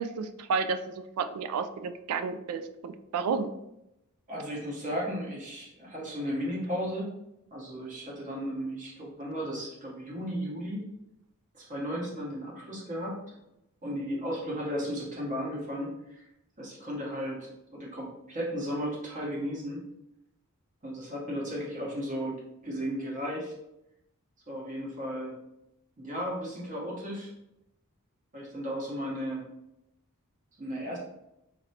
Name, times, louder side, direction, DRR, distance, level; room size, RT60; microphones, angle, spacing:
voice 1, 0.0-3.5, right 5 dB, 80° right, 11 dB, 0.3 m, -31 dB
voice 2, 4.3-7.1 7.5-10.8 11.5-13.2 13.8-16.3 16.6-19.8 20.8-22.3 22.6-23.5 24.5-25.3 26.0-27.3 28.3-29.4 30.6-31.0, equal, 35° right, -4 dB, 0.9 m, -35 dB
3.2 x 2.6 x 2.7 m, 0.86 s
head